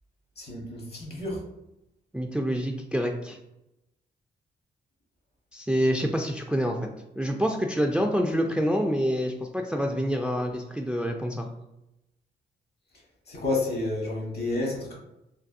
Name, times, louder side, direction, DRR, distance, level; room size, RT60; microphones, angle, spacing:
voice 1, 0.4-1.4 13.3-15.0, left 2 dB, 60° left, -2 dB, 1.3 m, -30 dB
voice 2, 2.1-3.4 5.5-6.8 7.2-11.5, equal, 5° right, 2 dB, 0.3 m, -27 dB
3.3 x 2.3 x 2.6 m, 0.88 s
supercardioid pair, 55°, 19 cm